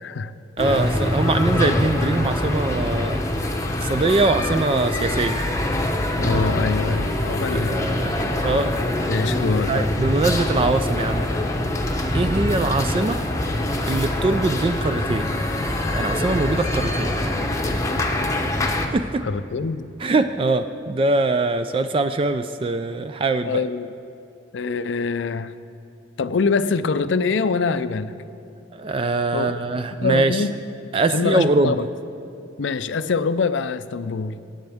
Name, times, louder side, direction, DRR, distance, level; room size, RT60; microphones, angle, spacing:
voice 1, 0.0-0.3 6.2-7.8 9.1-9.9 19.2-19.9 23.5-23.9 24.5-25.5 26.2-28.1 29.3-30.5 31.1-31.9 32.6-34.4, left 4 dB, 70° left, 12 dB, 0.5 m, -24 dB
sound 1, 0.6-18.9, left 1 dB, 15° left, 0.8 m, -24 dB
voice 2, 0.6-3.2 3.8-5.4 7.5-8.1 8.4-8.7 9.7-11.3 12.1-13.2 13.9-15.3 15.9-17.1 18.9-19.3 20.0-23.6 28.7-30.4 30.9-31.8, right 3 dB, 30° right, 10 dB, 0.3 m, -22 dB
24.0 x 9.1 x 3.5 m, 2.6 s
head